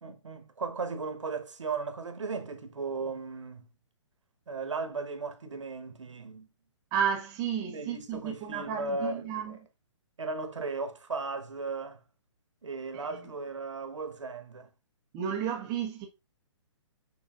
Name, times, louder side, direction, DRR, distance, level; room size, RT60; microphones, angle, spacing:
voice 1, 0.0-3.7 4.5-6.5 7.7-9.6 10.2-12.0 12.6-14.7, right 4 dB, 75° right, 1.1 m, -36 dB
voice 2, 6.9-9.6 12.9-13.2 15.1-16.1, right 8 dB, 25° right, 0.9 m, -32 dB
10.0 x 3.8 x 2.4 m
figure-of-eight pair, 130°, 16 cm